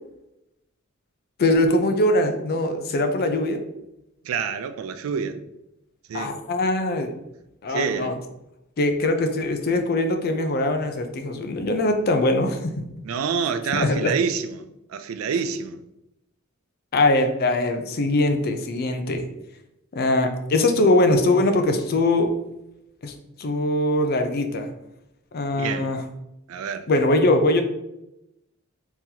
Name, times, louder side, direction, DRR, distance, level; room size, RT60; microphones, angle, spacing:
voice 1, 1.4-3.6 6.1-7.1 7.6-8.1 8.8-12.7 13.7-14.1 16.9-19.2 19.9-22.3 23.0-23.1 23.4-24.7 25.3-26.0 26.9-27.6, left 2 dB, 50° left, 0.4 m, -22 dB
voice 2, 4.2-5.4 6.1-6.4 7.7-8.1 13.0-15.8 25.5-25.9 26.5-26.9, right 6 dB, 85° right, 0.3 m, -27 dB
3.7 x 2.9 x 2.7 m
head